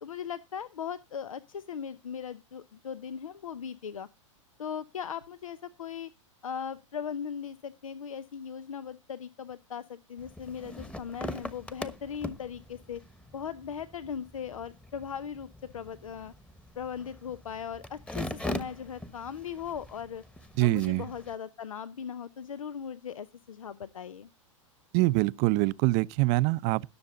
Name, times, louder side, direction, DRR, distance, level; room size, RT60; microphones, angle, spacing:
voice 1, 0.0-4.1 4.6-6.1 6.4-13.0 13.3-16.3 16.8-20.2 20.6-24.3, left 7 dB, 85° left, 0.7 m, -38 dB
sound 1, 10.2-21.3, left 1 dB, 5° left, 1.2 m, -42 dB
voice 2, 20.6-21.0 24.9-26.9, right 20 dB, 45° right, 0.6 m, -24 dB
18.0 x 6.9 x 3.8 m
hypercardioid pair, 110°, 17 cm